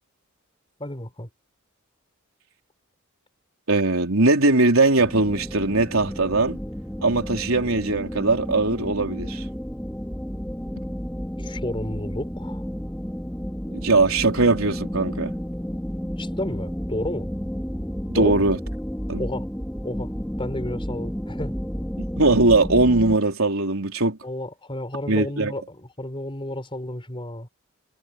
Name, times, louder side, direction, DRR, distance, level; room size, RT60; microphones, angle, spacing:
voice 1, 0.8-1.3 11.4-12.6 16.2-17.3 18.1-18.5 19.2-19.4 19.8-20.1 20.4-21.5 24.2-27.5, left 1 dB, 25° left, 4.8 m, -31 dB
voice 2, 3.7-6.6 7.0-9.5 13.7-15.3 18.1-18.6 19.1-19.2 22.0-24.2 25.1-25.5, right 2 dB, 85° right, 3.7 m, -20 dB
sound 1, 5.0-23.2, equal, 5° left, 3.5 m, -32 dB
head